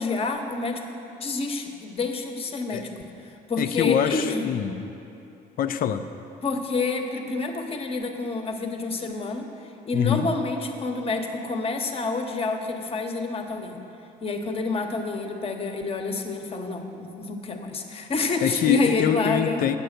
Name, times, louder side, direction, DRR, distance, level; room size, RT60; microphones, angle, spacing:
voice 1, 0.0-2.9 3.2-4.5 6.4-9.5 9.8-13.8 14.2-19.6, left 3 dB, 35° left, 4 dB, 1.1 m, -28 dB
voice 2, 3.6-4.9 5.6-6.0 9.9-10.3 18.4-19.8, left 9 dB, 55° left, 10 dB, 0.6 m, -24 dB
9.0 x 8.0 x 6.7 m, 2.8 s
cardioid pair, 110°, 17 cm